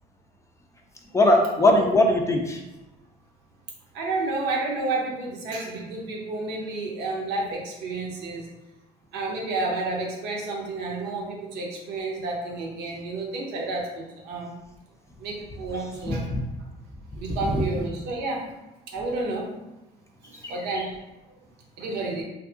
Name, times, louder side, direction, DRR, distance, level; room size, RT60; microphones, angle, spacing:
voice 1, 1.1-2.6 16.0-16.4 17.3-17.6 20.4-20.9, left 1 dB, 15° left, 1 dB, 0.4 m, -21 dB
voice 2, 3.9-8.5 9.1-14.5 15.2-16.3 17.2-18.5 18.9-19.5 20.3-20.9 21.3-21.4 21.8-22.2, right 3 dB, 85° right, -1 dB, 0.7 m, -30 dB
2.7 x 2.5 x 2.4 m, 0.99 s
cardioid pair, 110°, 17 cm